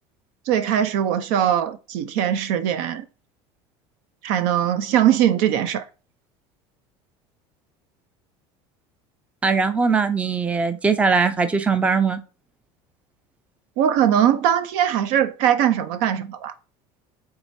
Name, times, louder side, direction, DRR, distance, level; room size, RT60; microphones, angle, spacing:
voice 1, 0.5-3.0 4.2-5.8 13.8-16.5, right 10 dB, 70° right, 0.6 m, -21 dB
voice 2, 9.4-12.2, right 5 dB, 10° right, 0.4 m, -20 dB
4.8 x 3.4 x 2.6 m
supercardioid pair, 125°, 14 cm